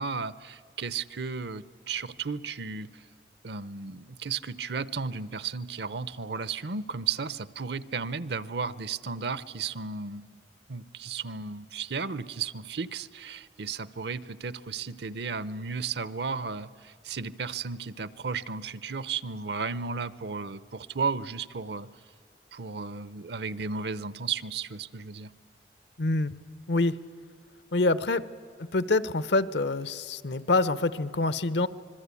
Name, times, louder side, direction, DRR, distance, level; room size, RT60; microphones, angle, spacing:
voice 1, 0.0-3.0 3.4-10.4 10.7-21.9 22.5-25.3, right 5 dB, 70° right, 17 dB, 0.7 m, -34 dB
voice 2, 26.0-26.3 26.7-27.0 27.7-28.3 28.6-31.7, left 2 dB, 75° left, 16 dB, 0.8 m, -26 dB
26.0 x 21.5 x 8.4 m, 2.3 s
head